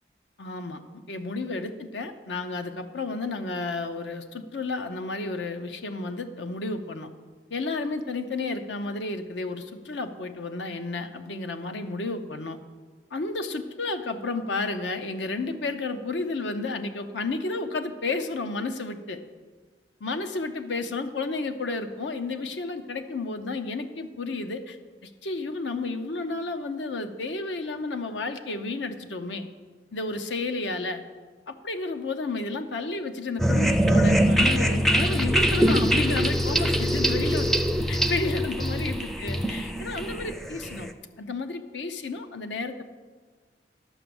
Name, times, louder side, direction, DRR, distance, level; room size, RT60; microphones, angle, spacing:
voice 1, 0.4-0.8 1.1-7.1 7.5-12.6 13.1-19.2 20.0-24.8 25.0-29.5 29.9-31.0 31.5-37.5 37.9-40.9 41.2-42.8, left 3 dB, 85° left, 8 dB, 0.7 m, -32 dB
sound 1, 33.4-40.9, equal, ahead, 0.4 m, -23 dB
11.5 x 6.0 x 7.0 m, 1.4 s
head